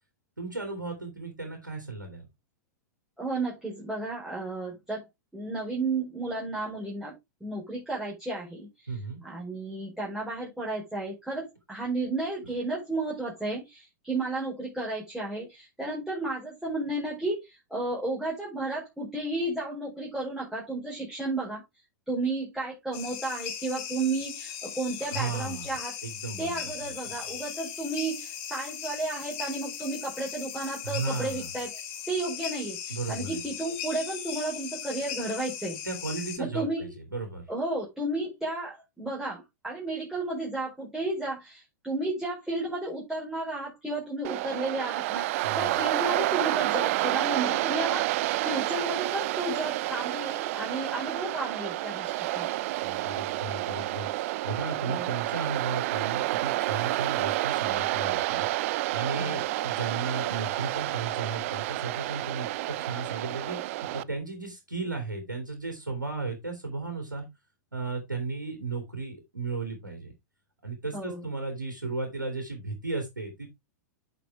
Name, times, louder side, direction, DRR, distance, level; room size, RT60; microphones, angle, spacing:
voice 1, 0.4-2.2 8.9-9.2 12.4-12.5 25.1-25.8 26.0-26.9 30.8-31.5 32.9-33.4 35.8-37.5 45.4-45.8 52.8-67.2 67.7-70.1 70.6-73.5, right 3 dB, 85° right, 2.8 m, -35 dB
voice 2, 3.2-5.1 5.3-7.1 7.4-8.7 9.2-21.6 22.1-25.9 26.4-31.7 32.1-35.8 36.4-36.8 37.5-52.5 54.9-55.1 59.2-59.5 70.9-71.3, right 2 dB, 5° right, 4.7 m, -33 dB
sound 1, 22.9-36.4, left 9 dB, 45° left, 3.3 m, -38 dB
Waves surf, 44.2-64.0, right 17 dB, 50° right, 0.5 m, -29 dB
8.9 x 6.4 x 3.4 m
figure-of-eight pair, 100°, 10 cm